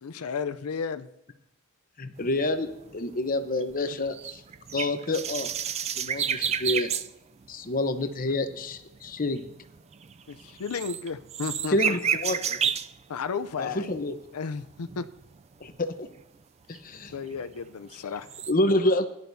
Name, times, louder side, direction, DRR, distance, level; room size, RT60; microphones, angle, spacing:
voice 1, 0.0-1.1 10.3-11.9 13.1-13.9 14.3-15.0 17.1-18.3, left 5 dB, 90° left, 11 dB, 0.5 m, -33 dB
voice 2, 2.0-4.4 4.7-5.5 5.8-6.9 7.5-9.5 11.7-12.6 13.6-14.1 15.6-16.1 16.7-17.1 18.5-19.1, left 2 dB, 40° left, 8 dB, 0.9 m, -28 dB
sound 1, 2.2-7.1 7.4-7.7 8.0-13.0 13.4-14.2 14.7-15.9 16.2-16.3 16.7-18.0 18.2-18.5, right 8 dB, 30° right, 0.3 m, -32 dB
17.5 x 11.0 x 2.7 m, 0.85 s
head